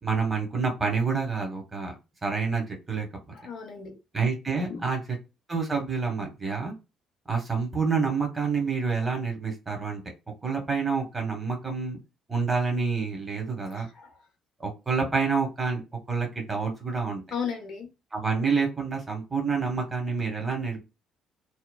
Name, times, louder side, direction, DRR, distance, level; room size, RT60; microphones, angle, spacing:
voice 1, 0.0-1.9 2.2-3.1 4.1-5.0 5.5-6.7 7.3-10.0 10.4-12.0 12.3-13.9 14.6-15.8 16.1-17.2 18.1-20.8, right 5 dB, 25° right, 1.2 m, -28 dB
voice 2, 3.3-4.0 4.7-4.9 13.7-14.3 17.3-17.9, left 6 dB, 50° left, 0.6 m, -35 dB
3.0 x 2.1 x 2.2 m
figure-of-eight pair, 45°, 0 cm